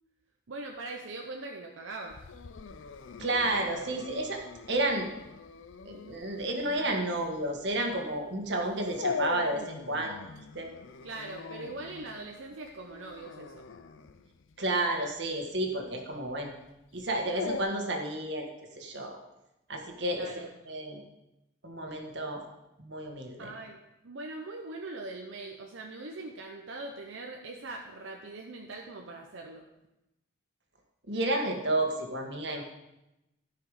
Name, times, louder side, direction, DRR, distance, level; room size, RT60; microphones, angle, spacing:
voice 1, 0.5-2.2 11.0-13.7 20.1-20.5 23.4-29.7, right 2 dB, 85° right, 2 dB, 0.8 m, -41 dB
Dog, 2.1-17.6, left 5 dB, 85° left, 0.6 m, -42 dB
voice 2, 3.2-4.4 4.7-5.1 5.8-10.1 10.5-10.7 14.6-16.5 16.9-19.2 19.7-20.3 20.7-21.0 21.6-22.4 22.8-23.4 31.1-32.6, right 1 dB, 65° right, 2 dB, 1.6 m, -31 dB
13.5 x 5.8 x 4.9 m, 0.92 s
head